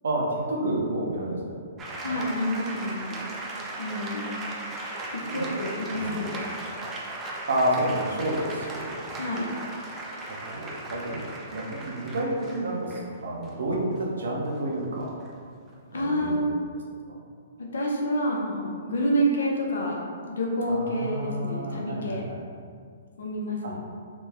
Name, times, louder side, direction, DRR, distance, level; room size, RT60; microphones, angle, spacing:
voice 1, 0.0-1.6 2.0-2.2 5.3-5.5 5.9-6.2 7.5-9.1 10.5-15.1 15.9-16.4 20.7-22.4 23.6-23.7, right 1 dB, 80° right, -2 dB, 0.7 m, -29 dB
sound 1, 1.8-16.2, right 2 dB, 20° right, 0.4 m, -37 dB
voice 2, 2.0-3.2 3.8-4.4 5.1-6.8 9.2-9.5 15.9-16.6 17.6-20.0 20.3-22.2 23.2-23.8, equal, 80° left, -2 dB, 0.6 m, -28 dB
3.0 x 2.1 x 3.4 m, 2.2 s
hypercardioid pair, 145°, 0 cm